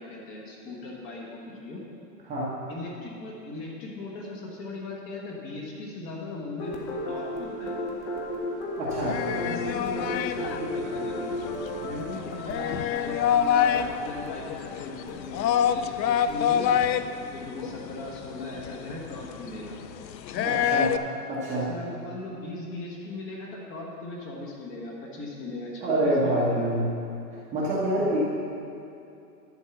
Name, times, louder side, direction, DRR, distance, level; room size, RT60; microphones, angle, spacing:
voice 1, 0.0-1.8 2.7-6.7 7.1-7.7 9.3-11.3 11.6-16.8 17.3-19.8 20.3-20.6 21.5-26.7, left 2 dB, 25° left, -2 dB, 1.5 m, -38 dB
sound 1, 6.6-16.4, left 1 dB, 40° left, 1.6 m, -35 dB
voice 2, 8.8-9.2 20.4-20.9 21.3-21.7 25.8-26.9 27.3-28.2, right 1 dB, 15° right, -7 dB, 1.1 m, -26 dB
sound 2, 8.9-21.0, left 9 dB, 90° left, 0.6 m, -28 dB
11.5 x 4.7 x 7.0 m, 2.6 s
hypercardioid pair, 150°, 50 cm